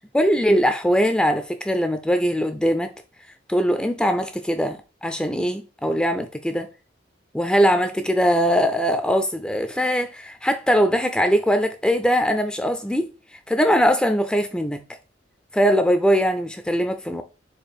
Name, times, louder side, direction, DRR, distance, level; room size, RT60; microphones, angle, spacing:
voice 1, 0.1-2.9 3.5-6.7 7.3-13.1 13.5-14.8 15.5-17.2, equal, 5° left, 0.3 m, -21 dB
4.5 x 2.4 x 4.8 m
head